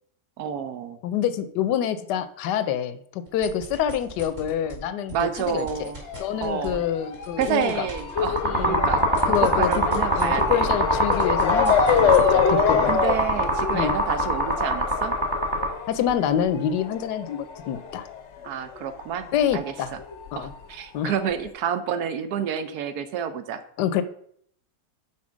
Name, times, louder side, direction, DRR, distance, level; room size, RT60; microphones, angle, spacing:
voice 1, 0.4-1.0 5.1-6.0 6.4-6.8 7.4-10.7 11.9-12.1 12.8-15.2 18.4-19.3 19.5-20.0 20.3-23.6, right 7 dB, 70° right, 11 dB, 1.1 m, -29 dB
voice 2, 1.0-5.9 6.2-7.9 8.4-8.8 9.3-9.7 10.2-12.9 13.7-14.0 15.9-18.1 19.3-19.9 20.3-20.5 20.9-21.1 23.8-24.0, left 9 dB, 85° left, 12 dB, 1.2 m, -26 dB
sound 1, 3.3-4.8 5.1-10.6 10.8-12.3, right 1 dB, 45° right, 3.2 m, -40 dB
Motor vehicle (road) / Siren, 6.0-19.0 19.3-20.5 21.1-21.2 21.5-21.6, left 6 dB, 60° left, 0.8 m, -26 dB
sound 2, 8.2-15.7, right 1 dB, 15° right, 1.3 m, -23 dB
5.8 x 4.4 x 6.1 m, 0.64 s
omnidirectional pair, 1.8 m